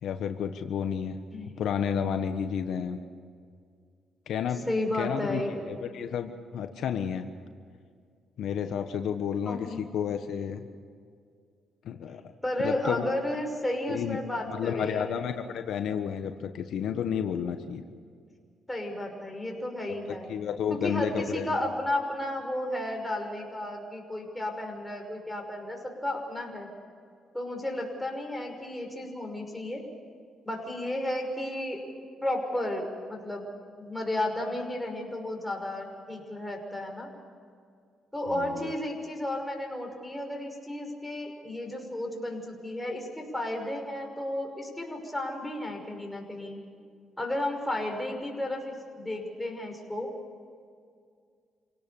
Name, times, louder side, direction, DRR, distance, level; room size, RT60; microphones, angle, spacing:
voice 1, 0.0-1.1 1.6-3.0 4.3-4.6 5.0-5.4 5.7-7.3 8.4-10.6 11.8-12.2 12.6-13.1 13.9-14.2 14.5-17.8 20.1-21.5 38.3-38.7, left 8 dB, 75° left, 6 dB, 1.3 m, -31 dB
voice 2, 4.6-5.9 9.4-9.8 12.4-15.1 18.7-20.3 20.7-26.7 27.3-29.9 30.4-31.8 32.2-33.5 33.8-37.1 38.1-46.6 47.2-50.1, left 1 dB, 5° left, 1 dB, 5.9 m, -33 dB
28.0 x 17.5 x 7.2 m, 2.2 s
cardioid pair, 90°, 0 cm